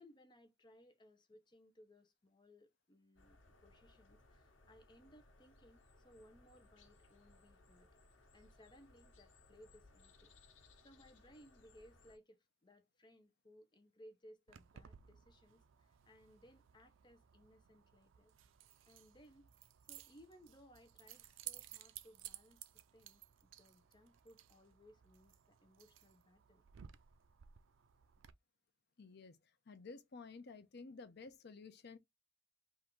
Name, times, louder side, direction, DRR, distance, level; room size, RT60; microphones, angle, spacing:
voice 1, 0.0-7.9 8.3-18.3 18.9-19.5 19.8-22.6 22.9-26.6, equal, 25° left, 0.8 m, -64 dB
sound 1, 3.2-12.2, left 2 dB, 90° left, 1.1 m, -66 dB
Keys jangling, 14.5-28.3, right 12 dB, 85° right, 0.5 m, -57 dB
voice 2, 29.0-32.0, left 4 dB, 60° left, 0.7 m, -53 dB
3.7 x 2.7 x 4.5 m
head